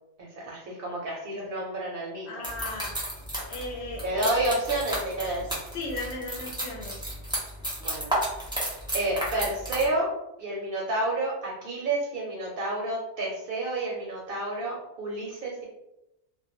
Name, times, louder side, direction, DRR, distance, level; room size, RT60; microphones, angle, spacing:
voice 1, 0.2-2.4 4.0-5.4 7.8-8.1 8.9-10.1 10.4-15.6, right 2 dB, 60° right, -3 dB, 0.7 m, -30 dB
voice 2, 2.3-2.9 3.5-4.6 5.7-7.0, left 2 dB, 75° left, -2 dB, 0.8 m, -36 dB
sound 1, 2.4-9.9, right 1 dB, 5° right, 0.5 m, -33 dB
2.2 x 2.1 x 3.0 m, 0.90 s
omnidirectional pair, 1.1 m